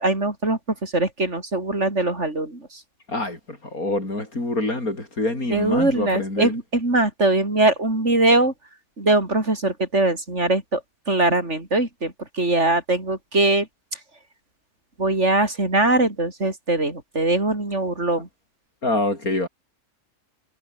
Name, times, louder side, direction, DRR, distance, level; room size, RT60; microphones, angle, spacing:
voice 1, 0.0-2.8 5.5-8.5 9.0-10.8 11.1-13.7 15.0-18.3, right 2 dB, 50° right, 5.2 m, -21 dB
voice 2, 3.1-6.5 18.8-19.5, left 2 dB, 70° left, 7.2 m, -26 dB
omnidirectional pair, 1.6 m